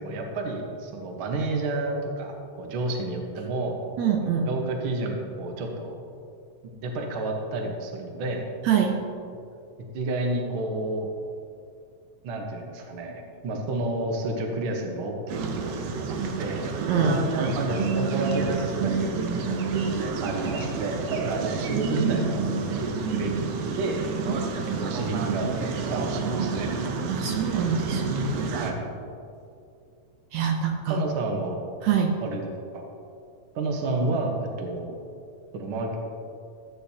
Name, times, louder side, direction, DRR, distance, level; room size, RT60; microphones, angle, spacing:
voice 1, 0.0-3.8 4.4-6.0 6.8-8.4 9.9-11.1 12.2-17.1 17.6-19.6 20.2-22.9 23.1-24.1 24.8-26.7 28.6-28.8 30.9-31.6 32.2-32.5 32.7-32.8 33.5-35.0 35.5-36.0, right 2 dB, 55° right, 1 dB, 1.6 m, -30 dB
voice 2, 4.0-4.5 8.7-9.0 16.9-17.8 27.1-28.3 30.3-31.0 31.8-32.2, right 6 dB, 75° right, 2 dB, 2.0 m, -25 dB
sound 1, 15.3-28.7, right 5 dB, 90° right, 2.3 m, -29 dB
14.5 x 8.5 x 2.8 m, 2.5 s
omnidirectional pair, 3.4 m